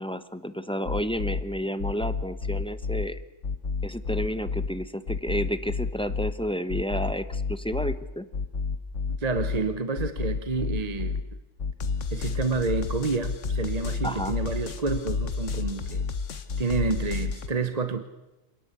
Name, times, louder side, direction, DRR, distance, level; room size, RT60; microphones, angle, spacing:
voice 1, 0.0-3.2 3.8-8.2 14.0-14.4, equal, 5° left, 0.9 m, -31 dB
sound 1, 0.9-1.4 1.8-3.1 3.4-4.7 5.1-6.3 6.7-8.0 8.3-9.6 10.0-11.2 11.6-17.5, left 4 dB, 75° left, 1.5 m, -30 dB
voice 2, 9.2-11.2 12.1-16.1 16.6-18.0, right 4 dB, 35° right, 1.1 m, -29 dB
27.0 x 18.0 x 8.3 m
omnidirectional pair, 1.3 m